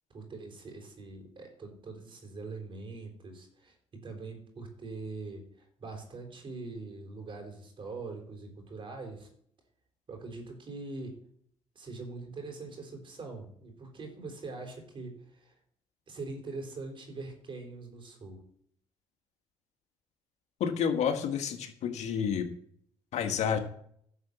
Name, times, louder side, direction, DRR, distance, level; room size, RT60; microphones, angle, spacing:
voice 1, 0.1-9.3 10.1-11.2 11.7-15.6 16.1-18.4, right 3 dB, 45° right, 3 dB, 4.5 m, -43 dB
voice 2, 20.6-22.5 23.1-23.6, left 7 dB, 65° left, 5 dB, 1.8 m, -29 dB
11.0 x 6.2 x 7.0 m, 0.65 s
supercardioid pair, 80°, 12 cm